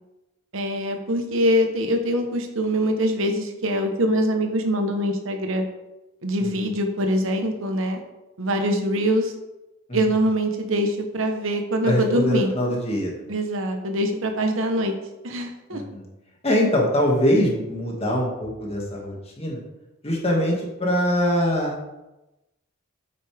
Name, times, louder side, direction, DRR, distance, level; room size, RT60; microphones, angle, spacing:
voice 1, 0.5-5.6 6.2-8.0 8.4-9.3 9.9-12.5 13.3-14.9 15.2-15.8, equal, 70° right, 4 dB, 1.2 m, -23 dB
voice 2, 11.8-13.1 15.7-16.0 16.4-19.6 20.0-21.7, equal, 30° left, -2 dB, 2.1 m, -23 dB
9.4 x 8.5 x 3.5 m, 0.99 s
head